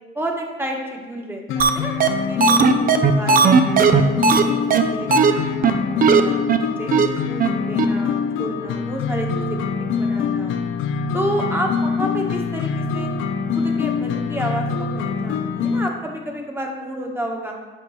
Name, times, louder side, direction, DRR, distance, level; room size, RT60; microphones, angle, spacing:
voice 1, 0.1-3.8 4.4-7.0 7.3-10.5 11.1-13.1 13.5-17.5, equal, 10° right, 1 dB, 1.2 m, -30 dB
sound 1, 1.5-15.9, left 5 dB, 85° left, 0.5 m, -24 dB
sound 2, 1.6-1.7 2.0-2.1 2.4-4.4 4.7-4.8 5.1-5.3 5.6-5.7 6.0-6.2 6.5-6.6 6.9-7.1 7.4-7.5 7.8-7.9, right 6 dB, 45° right, 0.5 m, -15 dB
7.7 x 5.3 x 3.1 m, 1.3 s
cardioid pair, 90°, 20 cm